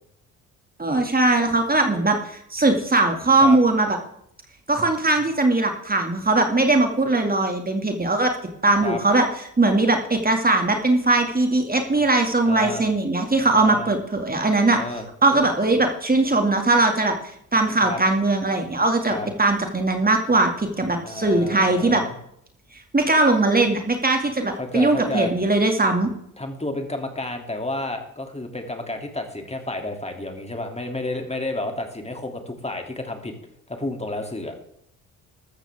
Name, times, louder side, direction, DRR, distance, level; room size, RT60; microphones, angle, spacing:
voice 1, 0.8-4.0 4.7-8.3 8.6-9.3 9.6-14.8 15.2-17.1 17.5-22.0 22.9-26.1, right 2 dB, 20° right, 4 dB, 2.4 m, -20 dB
voice 2, 12.5-12.8 13.5-13.9 14.7-15.0 17.8-18.0 19.1-19.3 21.0-22.2 24.6-25.3 26.4-33.3 33.7-34.6, left 2 dB, 15° left, 4 dB, 2.9 m, -31 dB
14.0 x 13.5 x 3.6 m, 0.72 s
hypercardioid pair, 55°, 41 cm